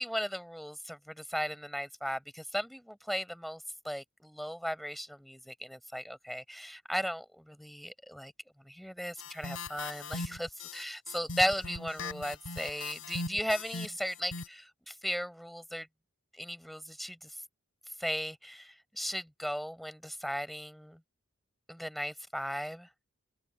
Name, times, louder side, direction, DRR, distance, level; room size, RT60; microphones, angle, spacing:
voice 1, 0.0-8.3 8.6-15.9 16.3-17.4 18.0-21.0 21.7-22.9, equal, ahead, 4.7 m, -36 dB
sound 1, 9.2-14.5, left 3 dB, 75° left, 4.7 m, -40 dB
open air
head